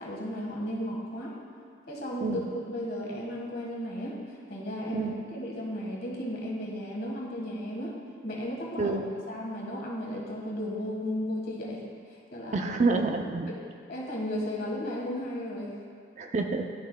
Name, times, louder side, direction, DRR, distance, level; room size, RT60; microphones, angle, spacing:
voice 1, 0.0-1.4 1.9-2.4 2.7-8.0 8.2-9.0 9.3-11.8 12.3-12.6 13.9-15.8, equal, 55° left, -3 dB, 1.5 m, -34 dB
voice 2, 12.5-13.5 16.2-16.7, right 3 dB, 40° right, 4 dB, 0.4 m, -28 dB
13.5 x 5.6 x 2.2 m, 2.2 s
head